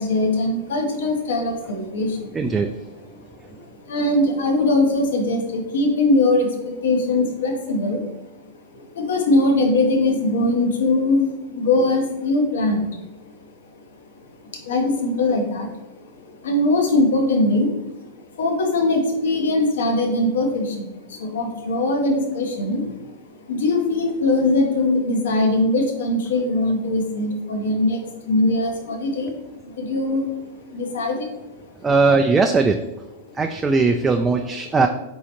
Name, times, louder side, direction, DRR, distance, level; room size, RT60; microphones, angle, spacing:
voice 1, 0.0-2.5 2.8-8.4 8.7-13.4 13.9-29.4 29.6-31.9, left 2 dB, 75° left, 4 dB, 0.9 m, -22 dB
voice 2, 2.3-2.7 31.8-32.8 33.4-34.9, right 4 dB, 15° right, 5 dB, 0.3 m, -18 dB
4.1 x 3.7 x 2.9 m, 0.98 s
hypercardioid pair, 110°, 0 cm